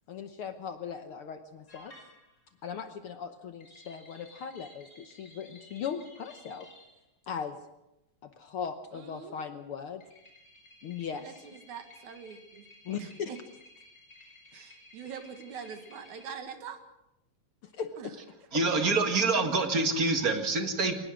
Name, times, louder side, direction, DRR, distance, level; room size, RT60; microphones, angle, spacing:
voice 1, 0.1-1.9 2.6-6.7 7.3-7.6 8.2-10.0 10.8-11.5 12.8-13.4 17.7-18.1, left 7 dB, 65° left, 8 dB, 1.6 m, -38 dB
sound 1, 1.7-2.5 3.6-7.0 10.0-16.3, left 1 dB, 25° left, 5.6 m, -55 dB
voice 2, 8.9-9.5 11.1-12.7 12.9-13.4 14.5-16.8 18.0-18.1, right 7 dB, 80° right, 8 dB, 3.2 m, -44 dB
voice 3, 18.5-20.9, right 3 dB, 35° right, 6 dB, 2.0 m, -26 dB
22.0 x 20.0 x 6.4 m, 0.90 s
omnidirectional pair, 3.3 m